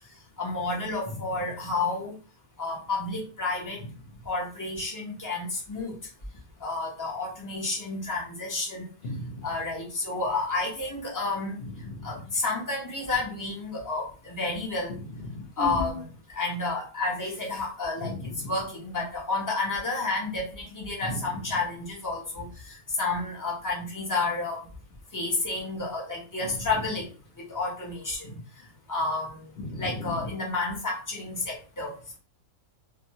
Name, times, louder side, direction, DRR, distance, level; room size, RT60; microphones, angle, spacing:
voice 1, 0.4-2.1 2.6-3.8 4.3-5.9 6.6-8.9 9.4-11.6 12.0-14.9 15.6-16.1 16.3-18.1 18.4-24.6 25.1-27.1 27.4-28.2 28.9-29.4 29.8-32.2, left 3 dB, 20° left, -3 dB, 0.5 m, -30 dB
voice 2, 9.0-9.4 11.8-12.1 15.3-16.0 18.0-18.5 21.1-21.2 28.2-28.4 29.6-30.2, left 1 dB, 50° left, -5 dB, 1.0 m, -35 dB
2.6 x 2.2 x 2.8 m, 0.37 s
omnidirectional pair, 1.6 m